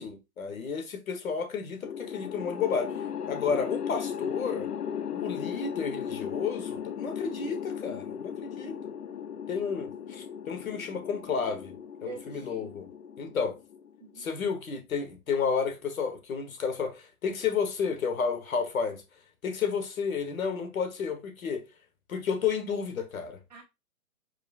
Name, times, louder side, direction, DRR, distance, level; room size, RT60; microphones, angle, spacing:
voice 1, 0.0-2.9 3.3-4.7 5.1-8.7 9.5-11.7 12.0-12.9 13.2-13.6 14.2-19.0 19.4-21.6 22.1-23.4, left 6 dB, 65° left, 1.3 m, -31 dB
sound 1, 1.8-14.1, left 8 dB, 85° left, 0.9 m, -37 dB
voice 2, 12.0-12.8 14.0-14.3 23.5-23.6, right 6 dB, 30° right, 0.9 m, -45 dB
5.0 x 4.2 x 2.4 m
hypercardioid pair, 180°, 45 cm